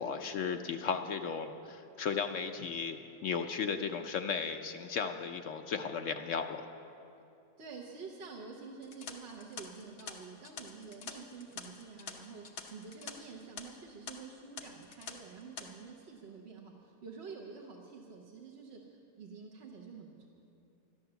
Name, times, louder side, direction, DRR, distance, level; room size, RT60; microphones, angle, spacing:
voice 1, 0.0-6.6, left 6 dB, 70° left, 6 dB, 0.7 m, -35 dB
voice 2, 7.6-20.3, right 5 dB, 45° right, 0 dB, 1.0 m, -48 dB
sound 1, 8.8-13.1 13.4-13.6 14.1-14.2 14.6-15.1 15.4-15.6, left 6 dB, 50° left, 1.0 m, -46 dB
12.0 x 11.0 x 6.8 m, 2.7 s
omnidirectional pair, 1.8 m